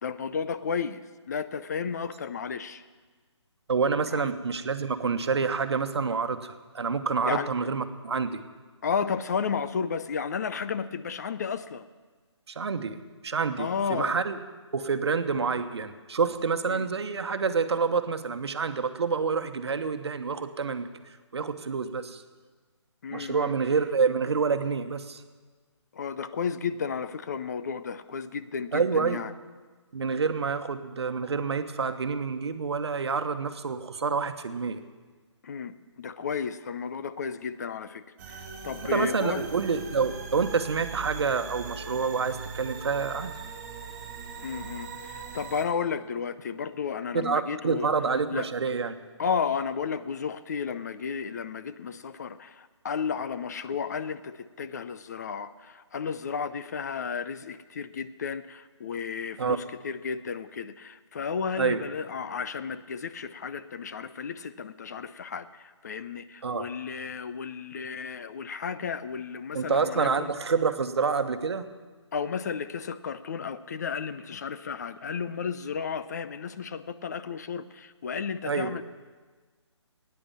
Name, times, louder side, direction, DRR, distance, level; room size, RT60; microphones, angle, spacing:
voice 1, 0.0-2.8 4.1-4.3 7.2-7.5 8.8-11.9 13.6-14.2 16.7-16.9 23.0-23.8 25.9-29.3 35.4-39.5 44.4-47.9 48.3-48.5 49.2-70.3 72.1-78.8, left 6 dB, 35° left, 12 dB, 0.5 m, -33 dB
voice 2, 3.7-8.4 12.5-14.4 14.7-20.9 21.3-22.2 23.1-25.2 28.7-29.2 29.9-34.8 38.8-43.3 47.1-48.9 59.4-59.6 61.6-61.8 66.4-66.7 69.5-71.7 78.4-78.8, right 5 dB, 60° right, 9 dB, 1.2 m, -28 dB
sound 1, 38.2-45.7, right 6 dB, 30° right, 2.5 m, -40 dB
16.5 x 9.8 x 7.3 m, 1.4 s
figure-of-eight pair, 155°, 15 cm